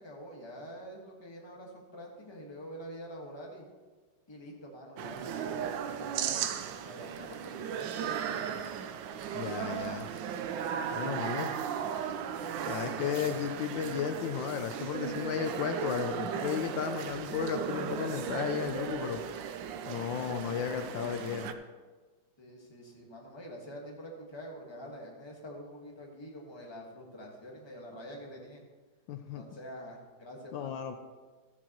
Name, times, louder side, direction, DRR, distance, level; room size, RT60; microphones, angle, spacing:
voice 1, 0.0-3.7 4.3-6.5 6.8-8.2 22.4-28.6 29.3-30.8, equal, 15° left, -1 dB, 1.4 m, -46 dB
sound 1, 5.0-21.5, right 8 dB, 75° right, 1.3 m, -36 dB
voice 2, 9.3-10.1 10.9-11.5 12.6-19.2 19.8-21.6 29.1-29.4 30.5-30.9, left 8 dB, 75° left, 7 dB, 1.3 m, -34 dB
14.0 x 10.0 x 3.0 m, 1.4 s
omnidirectional pair, 2.1 m